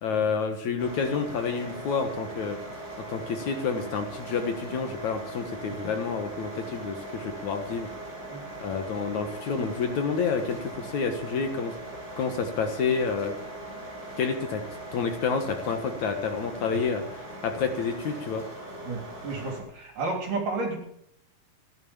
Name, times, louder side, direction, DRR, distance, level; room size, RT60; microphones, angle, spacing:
voice 1, 0.0-2.6 3.1-7.9 8.6-11.7 12.2-13.4 14.2-14.6 14.9-18.5, left 5 dB, 60° left, 6 dB, 2.5 m, -29 dB
sound 1, 0.8-19.6, right 1 dB, 30° right, 6.1 m, -40 dB
voice 2, 18.8-20.8, right 3 dB, 60° right, 2 dB, 4.9 m, -32 dB
14.5 x 11.0 x 7.2 m, 0.69 s
omnidirectional pair, 4.1 m